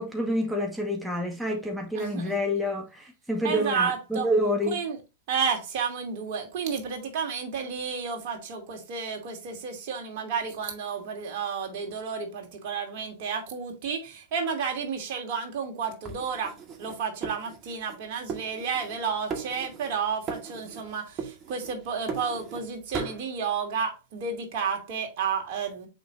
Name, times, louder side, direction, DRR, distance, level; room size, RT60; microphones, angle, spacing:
voice 1, 0.0-4.8, equal, 5° right, 2.0 m, -28 dB
voice 2, 1.9-2.3 3.4-4.3 4.7-5.0 5.3-25.9, right 6 dB, 55° right, 2.7 m, -31 dB
sound 1, 16.0-18.0 18.3-19.0 19.3-20.0 20.3-20.9 21.2-22.7 22.9-23.2, right 5 dB, 35° right, 2.0 m, -37 dB
7.1 x 5.5 x 2.7 m
hypercardioid pair, 100°, 0 cm